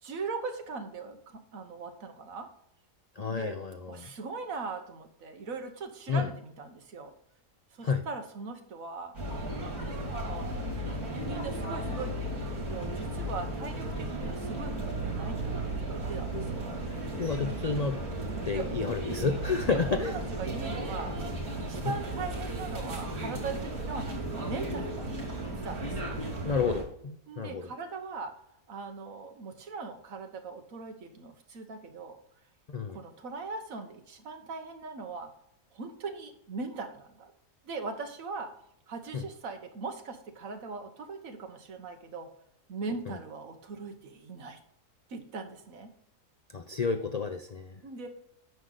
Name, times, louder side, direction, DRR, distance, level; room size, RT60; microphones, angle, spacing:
voice 1, 0.0-2.5 3.3-3.6 3.9-7.1 7.7-9.1 10.2-11.0 11.2-15.5 15.9-16.7 17.4-17.6 18.5-18.7 19.1-19.2 19.7-21.2 21.6-26.2 27.3-28.4 28.7-32.2 32.9-35.3 35.7-37.3 37.6-38.5 38.9-42.3 42.7-44.6 45.1-45.9 47.8-48.1, right 4 dB, 65° right, 6 dB, 1.6 m, -40 dB
voice 2, 3.2-4.1 6.1-6.3 7.8-8.0 16.3-16.4 17.2-18.0 18.4-20.2 26.4-27.6 32.7-33.0 39.1-39.2 43.1-43.2 46.5-47.8, left 5 dB, 70° left, 7 dB, 0.3 m, -30 dB
sound 1, 9.1-26.8, right 1 dB, 90° right, 3.0 m, -35 dB
9.6 x 6.5 x 3.9 m, 0.71 s
omnidirectional pair, 1.5 m